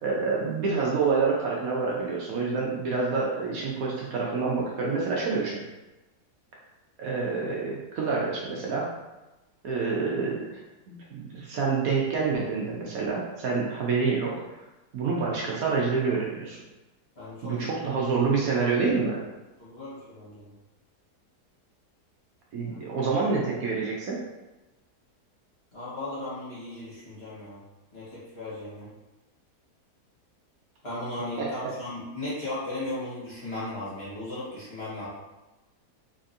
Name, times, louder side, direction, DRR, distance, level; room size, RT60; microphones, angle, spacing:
voice 1, 0.0-5.6 7.0-8.9 9.6-10.6 10.9-14.4 14.9-16.6 17.4-19.2 22.5-24.2 31.4-31.7, right 4 dB, 65° right, -3 dB, 1.1 m, -27 dB
voice 2, 17.1-17.7 19.6-20.5 22.6-22.8 25.7-27.6 27.9-28.9 30.8-35.1, left 2 dB, 40° left, -10 dB, 1.7 m, -36 dB
3.9 x 3.4 x 2.6 m, 1.1 s
omnidirectional pair, 1.7 m